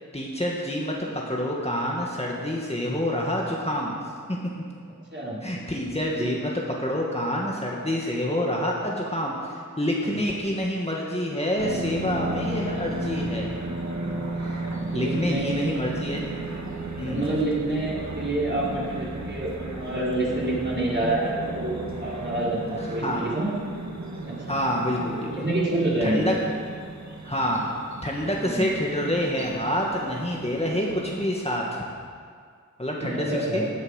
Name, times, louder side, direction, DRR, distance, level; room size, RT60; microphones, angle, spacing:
voice 1, 0.1-4.0 5.4-13.5 14.4-14.6 14.9-16.3 17.0-17.3 23.0-23.2 24.5-25.5 26.0-26.3 27.2-27.6 28.0-31.8 32.8-33.7, equal, 20° left, -3 dB, 2.1 m, -27 dB
voice 2, 5.1-5.4 10.1-10.3 14.8-15.7 17.0-23.5 24.2-24.5 25.3-26.3 28.4-28.6 33.0-33.6, right 1 dB, 35° right, -7 dB, 5.1 m, -27 dB
sound 1, 11.6-31.3, right 2 dB, 60° right, 1.8 m, -34 dB
17.0 x 9.5 x 6.7 m, 2.1 s
wide cardioid pair, 50°, 32 cm